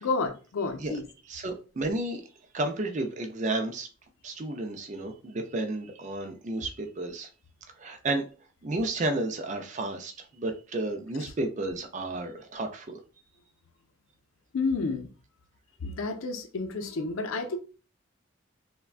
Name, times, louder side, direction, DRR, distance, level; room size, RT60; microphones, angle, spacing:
voice 1, 0.0-1.0 14.5-15.1 15.8-17.6, left 3 dB, 90° left, 0.5 m, -30 dB
voice 2, 1.3-2.2 2.5-3.9 4.2-7.3 7.8-8.2 8.6-13.0, right 2 dB, 35° right, 0.4 m, -32 dB
3.4 x 2.2 x 2.4 m
head